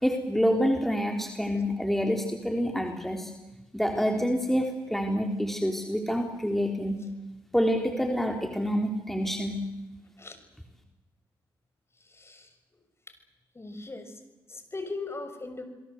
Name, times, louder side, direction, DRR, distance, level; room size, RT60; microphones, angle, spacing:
voice 1, 0.0-3.3 3.7-7.0 7.5-9.6, equal, 5° left, 3 dB, 3.8 m, -27 dB
voice 2, 12.0-12.5 13.5-14.2 14.5-15.6, left 3 dB, 30° left, 8 dB, 6.3 m, -39 dB
28.5 x 22.5 x 8.1 m, 1.1 s
supercardioid pair, 50°, 9 cm